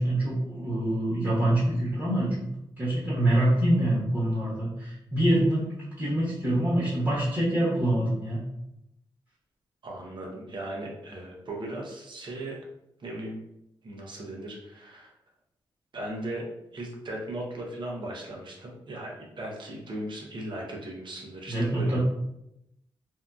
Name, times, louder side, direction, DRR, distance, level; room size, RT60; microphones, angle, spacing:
voice 1, 0.0-2.3 2.8-5.7 6.0-8.4 21.5-22.0, right 1 dB, 25° right, -10 dB, 1.3 m, -25 dB
voice 2, 9.8-12.6 13.0-13.4 13.8-15.1 15.9-16.5 16.7-22.0, right 1 dB, 55° right, -1 dB, 0.8 m, -37 dB
2.7 x 2.4 x 2.3 m, 0.84 s
cardioid pair, 60°, 10 cm